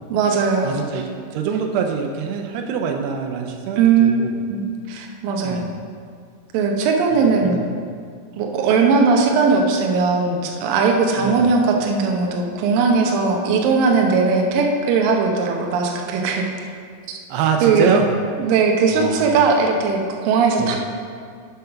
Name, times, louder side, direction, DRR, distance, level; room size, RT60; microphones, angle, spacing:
voice 1, 0.1-1.0 3.8-5.6 6.5-7.6 8.3-16.5 17.1-17.2 17.6-17.9 18.4-20.8, right 4 dB, 75° right, 1 dB, 2.3 m, -19 dB
voice 2, 0.6-4.4 5.4-5.7 7.1-7.7 11.2-11.5 17.3-18.1 18.9-19.3 20.6-20.8, right 7 dB, 90° right, 3 dB, 2.8 m, -24 dB
7.8 x 5.6 x 5.7 m, 2.1 s
omnidirectional pair, 4.6 m